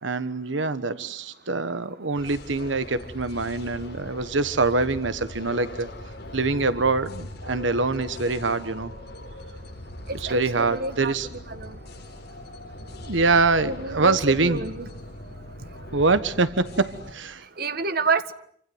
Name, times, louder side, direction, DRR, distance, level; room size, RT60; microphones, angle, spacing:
voice 1, 0.0-5.9 6.3-8.9 10.1-11.3 13.0-14.6 15.9-17.4, right 3 dB, 85° right, 12 dB, 1.4 m, -24 dB
sound 1, 2.1-17.1, left 1 dB, 60° left, 7.0 m, -40 dB
voice 2, 10.2-11.7 13.6-14.9 17.6-18.3, right 4 dB, 55° right, 11 dB, 1.7 m, -29 dB
28.0 x 25.5 x 8.0 m, 0.64 s
head